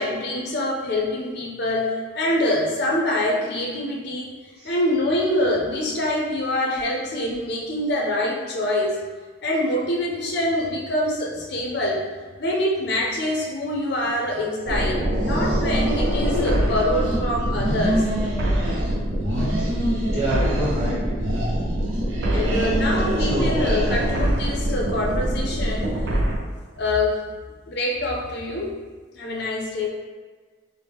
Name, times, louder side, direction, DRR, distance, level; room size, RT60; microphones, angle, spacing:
voice 1, 0.0-9.0 9.4-12.1 12.4-18.0 22.3-25.9 26.7-27.2 27.7-28.7 29.1-29.9, left 1 dB, 55° left, -2 dB, 0.5 m, -25 dB
sound 1, 14.7-26.4, right 1 dB, 60° right, 0.5 m, -24 dB
sound 2, 15.1-17.2 17.5-19.0 19.2-20.9 21.2-24.4, equal, 80° right, 0.9 m, -28 dB
voice 2, 20.1-21.0 23.2-23.6, right 1 dB, 30° right, -10 dB, 1.4 m, -27 dB
4.4 x 2.1 x 3.4 m, 1.5 s
head